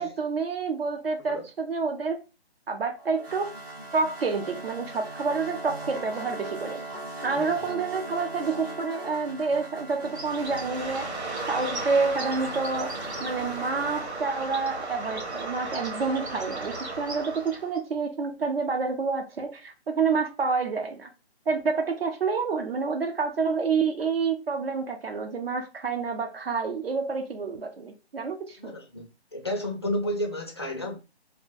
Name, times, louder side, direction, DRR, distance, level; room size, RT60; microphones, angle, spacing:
voice 1, 0.0-2.2 2.7-3.5 3.9-6.8 7.2-11.1 11.5-21.1 21.5-28.7, right 4 dB, 65° right, 0.7 m, -28 dB
sound 1, 3.0-14.1, right 2 dB, 20° right, 0.8 m, -39 dB
voice 2, 7.3-7.7 28.6-29.0 29.3-31.0, left 1 dB, 25° left, 0.4 m, -31 dB
Bird, 10.1-17.8, right 3 dB, 90° right, 1.2 m, -35 dB
2.7 x 2.1 x 3.9 m
hypercardioid pair, 165°, 33 cm